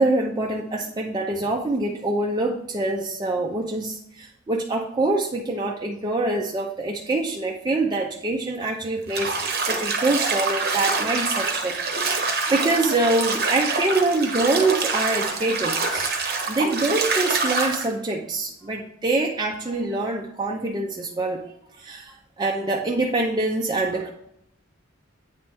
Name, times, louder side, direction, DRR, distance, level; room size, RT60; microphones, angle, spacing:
voice 1, 0.0-9.3 9.7-16.2 16.5-21.4 21.8-24.1, right 2 dB, 20° right, -1 dB, 0.5 m, -25 dB
Bathtub (filling or washing), 9.1-17.9, right 3 dB, 50° right, 0.9 m, -26 dB
8.9 x 3.2 x 3.4 m, 0.77 s
head